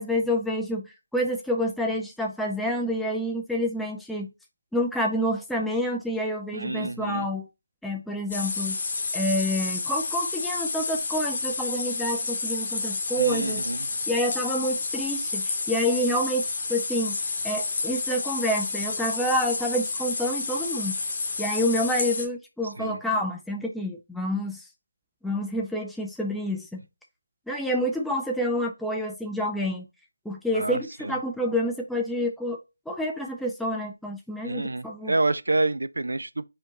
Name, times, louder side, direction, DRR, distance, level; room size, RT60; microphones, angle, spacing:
voice 1, 0.0-4.3 4.7-7.5 7.8-8.8 9.1-13.6 14.1-17.2 17.4-21.0 21.4-24.7 25.2-26.8 27.5-29.8 30.3-32.6 32.9-35.1, equal, ahead, 0.3 m, -28 dB
voice 2, 6.5-7.3 13.2-13.9 22.8-23.0 30.5-31.1 34.5-36.5, right 2 dB, 75° right, 0.4 m, -28 dB
sound 1, 8.3-22.3, left 4 dB, 35° left, 0.9 m, -30 dB
4.3 x 3.7 x 2.9 m
figure-of-eight pair, 165°, 0 cm